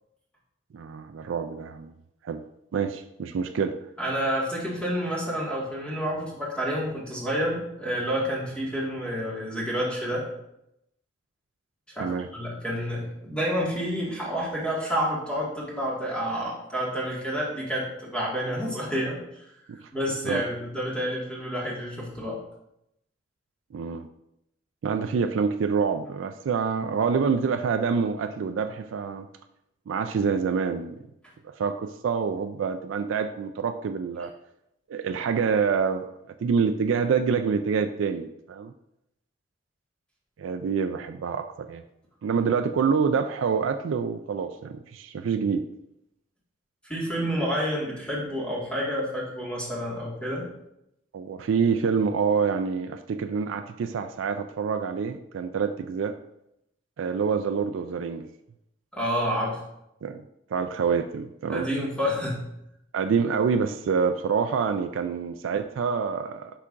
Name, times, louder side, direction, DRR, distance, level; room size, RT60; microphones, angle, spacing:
voice 1, 0.7-1.9 2.2-2.4 2.7-3.8 12.0-12.3 19.7-19.8 20.2-20.4 23.7-24.1 24.8-29.3 29.9-31.0 31.6-34.3 34.9-36.1 36.4-38.7 40.4-41.8 42.2-45.6 51.1-56.1 57.0-58.3 60.0-60.2 60.5-61.7 62.9-66.5, right 6 dB, 80° right, 7 dB, 0.3 m, -26 dB
voice 2, 4.0-10.2 12.0-19.2 19.9-22.4 46.9-50.5 58.9-59.6 61.5-62.5, equal, 5° left, -6 dB, 1.8 m, -29 dB
8.3 x 5.6 x 2.5 m, 0.82 s
head